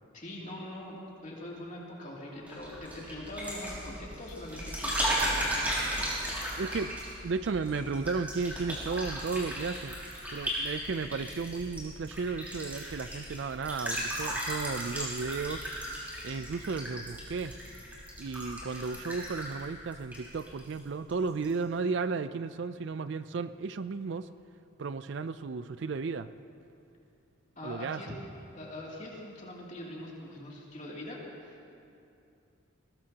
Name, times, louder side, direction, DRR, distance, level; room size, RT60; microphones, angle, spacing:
voice 1, 0.1-5.8 27.6-28.1 28.5-31.7, left 1 dB, 35° left, -4 dB, 2.7 m, -43 dB
sound 1, 2.5-20.8 21.1-21.5, equal, 10° right, 4.0 m, -36 dB
voice 2, 6.6-7.0 7.2-9.9 10.3-15.7 16.2-17.5 18.2-24.3 24.8-26.3 27.6-28.0, right 4 dB, 55° right, 13 dB, 0.4 m, -34 dB
21.5 x 19.5 x 2.9 m, 2.6 s
head